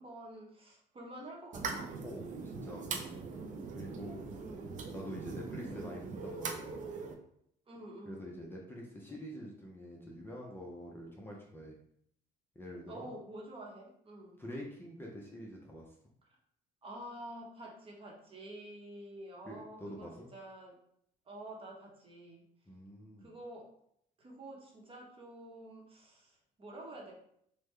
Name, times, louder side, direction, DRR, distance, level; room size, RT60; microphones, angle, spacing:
voice 1, 0.0-2.0 3.3-3.7 4.3-4.9 5.2-5.4 7.7-8.4 12.9-14.4 16.8-20.7 21.2-22.4 23.2-23.7 24.2-27.1, right 1 dB, 35° right, -1 dB, 0.9 m, -49 dB
sound 1, 1.5-7.1, right 4 dB, 50° right, 0.5 m, -41 dB
voice 2, 2.0-3.2 3.7-4.2 4.9-6.9 8.1-11.7 12.6-13.1 14.4-15.9 19.5-20.3 22.7-23.3, equal, 15° left, -2 dB, 0.6 m, -46 dB
3.3 x 2.1 x 3.2 m, 0.70 s
cardioid pair, 110°, 17 cm